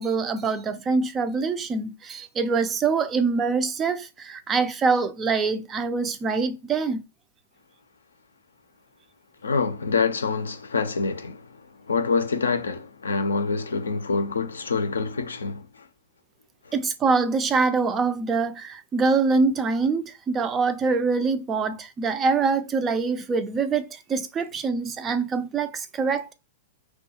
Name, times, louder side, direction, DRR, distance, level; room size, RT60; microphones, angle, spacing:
voice 1, 0.0-7.0 16.7-26.3, right 4 dB, 25° right, 0.3 m, -24 dB
voice 2, 9.4-11.5 11.9-15.8, left 4 dB, 75° left, 0.5 m, -26 dB
2.3 x 2.2 x 2.7 m
figure-of-eight pair, 105°, 0 cm